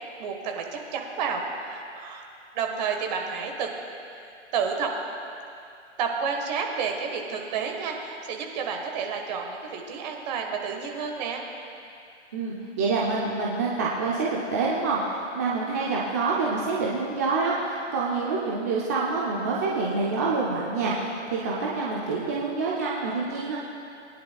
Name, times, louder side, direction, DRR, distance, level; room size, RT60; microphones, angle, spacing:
voice 1, 0.2-2.2 2.5-3.7 4.5-4.9 6.0-11.4, right 6 dB, 35° right, 2 dB, 1.4 m, -30 dB
voice 2, 12.3-23.6, right 3 dB, 15° right, -5 dB, 0.4 m, -27 dB
21.0 x 10.5 x 2.3 m, 2.5 s
hypercardioid pair, 145°, 37 cm